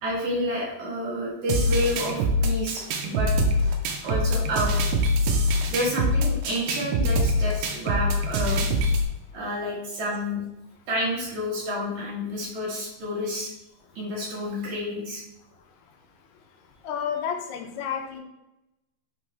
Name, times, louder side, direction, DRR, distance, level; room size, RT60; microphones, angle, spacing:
voice 1, 0.0-3.3 4.0-4.7 5.7-8.7 9.3-10.4 10.9-13.5 14.0-15.2, left 1 dB, 55° right, -5 dB, 2.9 m, -29 dB
sound 1, 1.5-9.1, equal, 75° right, 2.1 m, -24 dB
voice 2, 16.9-18.2, left 7 dB, 85° left, 4 dB, 2.8 m, -30 dB
8.4 x 3.7 x 3.3 m, 0.90 s
omnidirectional pair, 4.5 m